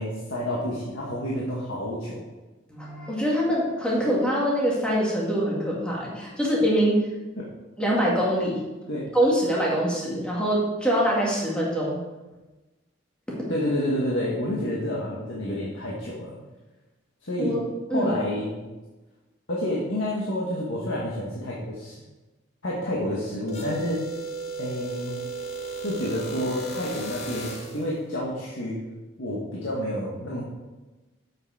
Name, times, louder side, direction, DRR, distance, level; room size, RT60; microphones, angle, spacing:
voice 1, 0.0-2.2 7.4-7.5 8.9-9.1 13.5-16.4 17.2-17.6 17.9-18.5 19.5-22.0 22.6-24.0 24.6-25.2 25.8-28.8 29.2-30.4, left 1 dB, 80° left, -4 dB, 1.6 m, -29 dB
voice 2, 2.7-7.1 7.8-8.6 9.1-12.0 13.3-13.5 17.4-18.1, equal, 5° left, -5 dB, 2.2 m, -24 dB
sound 1, 23.5-27.9, right 3 dB, 35° left, 1.3 m, -35 dB
8.0 x 6.7 x 4.9 m, 1.1 s
head